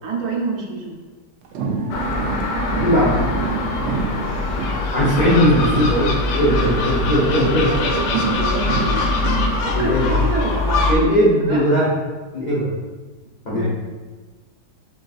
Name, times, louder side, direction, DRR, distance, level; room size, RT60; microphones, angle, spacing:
voice 1, 0.0-1.0 4.2-4.8 6.5-6.7 7.2-7.4 7.7-9.3 9.6-11.1 11.5-11.7 13.5-13.7, right 3 dB, 70° right, -2 dB, 1.2 m, -28 dB
sound 1, 1.4-5.3 5.6-9.6, right 4 dB, 90° right, 0.6 m, -28 dB
Gull seagull, 1.9-11.0, left 3 dB, 85° left, 1.2 m, -23 dB
voice 2, 2.8-3.2 4.9-7.7 9.7-10.1 10.9-11.9 12.3-12.7 13.4-13.7, equal, 60° left, -7 dB, 0.4 m, -18 dB
7.0 x 2.5 x 2.3 m, 1.3 s
omnidirectional pair, 1.8 m